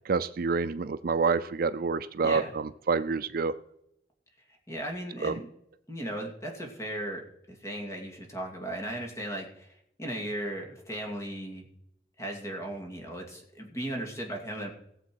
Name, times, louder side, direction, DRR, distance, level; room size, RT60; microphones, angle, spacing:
voice 1, 0.1-3.5 5.2-5.3, right 4 dB, 55° right, 13 dB, 0.5 m, -27 dB
voice 2, 2.2-2.5 4.7-5.5 5.9-7.2 7.5-11.7 12.2-14.7, right 1 dB, 15° left, 1 dB, 2.4 m, -36 dB
18.0 x 7.4 x 4.6 m, 0.76 s
head